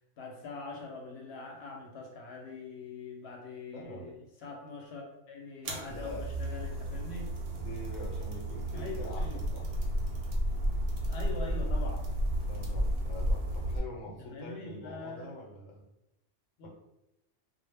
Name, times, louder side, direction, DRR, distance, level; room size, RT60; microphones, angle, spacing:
voice 1, 0.2-7.3 8.7-9.4 11.1-12.0 14.0-15.4 16.6-16.7, left 3 dB, 65° left, 0 dB, 0.8 m, -43 dB
voice 2, 3.7-4.1 5.8-6.3 7.6-9.7 12.4-15.8, left 1 dB, 90° left, -1 dB, 1.0 m, -44 dB
sound 1, 5.6-13.8, right 1 dB, 65° right, 0.7 m, -32 dB
2.0 x 2.0 x 3.2 m, 0.92 s
omnidirectional pair, 1.2 m